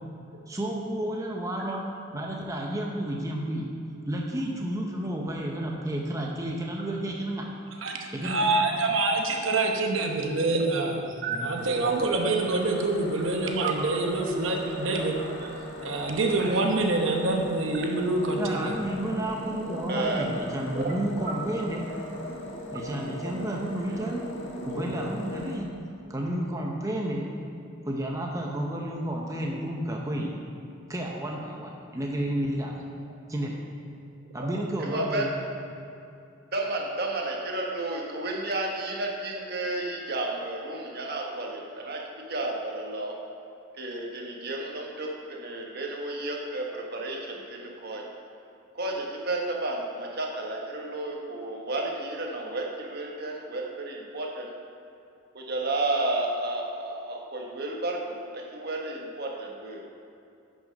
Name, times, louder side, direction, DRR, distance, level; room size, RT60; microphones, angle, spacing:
voice 1, 0.5-3.7 4.1-7.5 8.1-8.5 11.3-11.5 18.4-21.9 22.7-24.3 24.7-25.8 26.1-27.3 27.8-30.3 30.9-32.9 33.3-33.6 34.3-35.3, right 1 dB, 15° right, -1 dB, 0.7 m, -31 dB
voice 2, 8.2-11.1 11.4-15.1 15.8-18.7, right 2 dB, 75° right, 2 dB, 0.9 m, -26 dB
sound 1, 11.6-25.6, left 1 dB, 60° left, 1.8 m, -39 dB
voice 3, 19.9-20.2 20.7-20.9 21.2-21.3 23.9-24.0 34.4-34.5 34.8-35.2 36.5-42.0 42.3-43.2 43.8-48.0 48.7-54.5 55.3-59.8, right 2 dB, 50° right, 0 dB, 1.3 m, -32 dB
10.5 x 6.2 x 5.2 m, 2.6 s
head